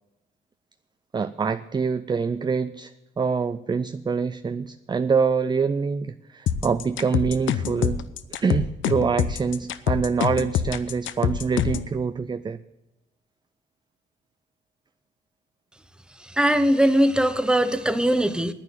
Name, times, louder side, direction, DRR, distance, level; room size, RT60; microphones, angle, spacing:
voice 1, 1.1-8.0 8.3-12.6, right 5 dB, 20° right, 12 dB, 0.4 m, -25 dB
sound 1, 6.5-11.9, left 9 dB, 75° left, 0.8 m, -25 dB
voice 2, 16.3-18.5, right 1 dB, 5° right, 11 dB, 1.0 m, -20 dB
9.9 x 9.3 x 9.1 m, 0.99 s
cardioid pair, 90°, 20 cm